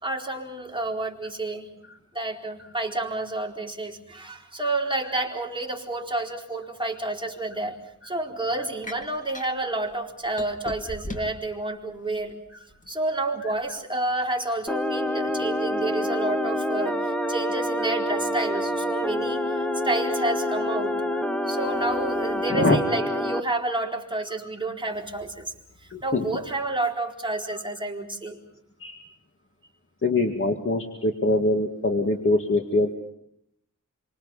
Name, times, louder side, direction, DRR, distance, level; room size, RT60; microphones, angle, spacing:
voice 1, 0.0-1.7 2.1-7.8 8.0-12.4 12.9-20.9 21.4-28.4, right 2 dB, 15° right, -1 dB, 4.3 m, -30 dB
sound 1, 8.8-9.5 10.4-11.5 12.1-12.9, left 1 dB, 25° left, 2.0 m, -37 dB
voice 2, 13.4-13.8 21.1-21.2 22.5-22.8 25.9-26.3 28.8-29.0 30.0-32.9, left 2 dB, 40° left, 3 dB, 2.3 m, -24 dB
sound 2, 14.7-23.4, left 1 dB, 5° left, 1.3 m, -27 dB
28.0 x 25.0 x 5.7 m, 0.76 s
wide cardioid pair, 105°, 32 cm